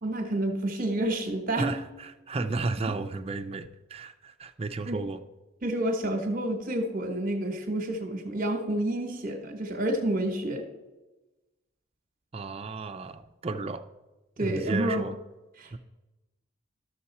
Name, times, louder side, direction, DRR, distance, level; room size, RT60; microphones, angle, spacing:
voice 1, 0.0-1.7 4.8-5.0 5.6-10.6 14.4-15.1 15.6-15.8, right 1 dB, 45° right, 5 dB, 1.1 m, -29 dB
voice 2, 1.5-5.2 12.3-13.9 14.4-15.1 15.7-15.8, right 3 dB, 30° right, 8 dB, 0.5 m, -33 dB
12.5 x 6.6 x 4.2 m, 1.1 s
head